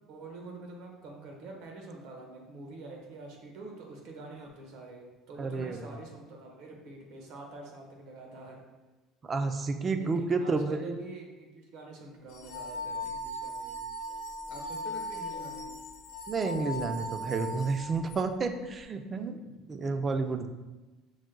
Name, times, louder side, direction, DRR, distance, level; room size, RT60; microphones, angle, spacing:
voice 1, 0.1-8.6 9.9-13.8 14.5-15.7 19.1-19.7, right 2 dB, 70° right, 1 dB, 1.1 m, -46 dB
voice 2, 5.4-5.8 9.2-10.9 16.3-19.4 19.7-20.5, right 4 dB, 25° right, 7 dB, 0.4 m, -30 dB
sound 1, 12.3-18.2, equal, 70° left, 0.7 m, -38 dB
6.1 x 2.2 x 3.8 m, 1.2 s
cardioid pair, 135°, 0 cm